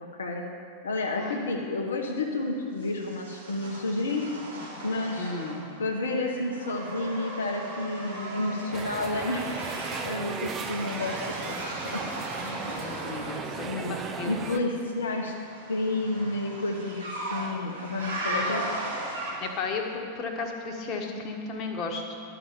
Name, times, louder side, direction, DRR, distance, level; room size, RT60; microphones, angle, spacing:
voice 1, 0.8-4.3 4.8-5.4 5.8-9.5 9.7-12.0 12.7-13.0 13.6-14.0 14.3-15.3 15.7-18.6, left 2 dB, 70° left, 0 dB, 0.9 m, -31 dB
sound 1, 2.8-5.8 6.1-13.4 15.0-19.7, right 1 dB, 80° right, 2.7 m, -37 dB
voice 2, 5.2-5.7 12.4-14.4 19.4-22.2, left 4 dB, 35° left, 2 dB, 1.4 m, -34 dB
sound 2, 8.7-14.6, right 5 dB, 25° right, 0.7 m, -36 dB
11.5 x 5.9 x 7.0 m, 2.3 s
figure-of-eight pair, 90°, 0 cm